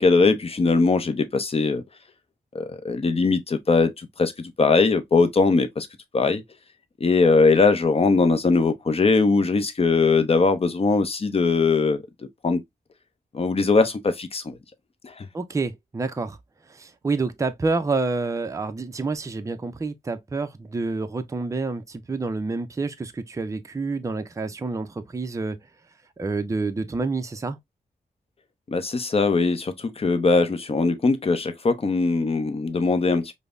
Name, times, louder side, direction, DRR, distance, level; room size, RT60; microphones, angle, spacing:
voice 1, 0.0-1.8 2.5-5.9 6.1-6.4 7.0-12.0 12.4-12.6 13.3-14.6 15.0-15.3 28.7-33.3, left 4 dB, 40° left, 0.5 m, -21 dB
voice 2, 15.3-16.4 16.7-25.6 26.2-27.6, right 3 dB, 20° right, 0.4 m, -28 dB
5.1 x 2.0 x 2.4 m
wide cardioid pair, 110°, 16 cm